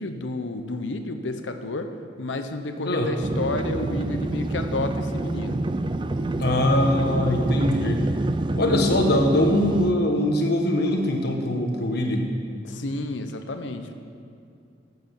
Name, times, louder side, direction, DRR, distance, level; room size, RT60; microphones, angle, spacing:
voice 1, 0.0-1.9 2.2-5.6 12.6-13.9, left 2 dB, 85° left, 7 dB, 0.9 m, -31 dB
sound 1, 3.2-9.9, right 2 dB, 25° right, 0.4 m, -27 dB
voice 2, 6.4-8.0 8.5-12.3, left 1 dB, 60° left, 2 dB, 1.5 m, -22 dB
12.0 x 7.7 x 7.1 m, 2.5 s
head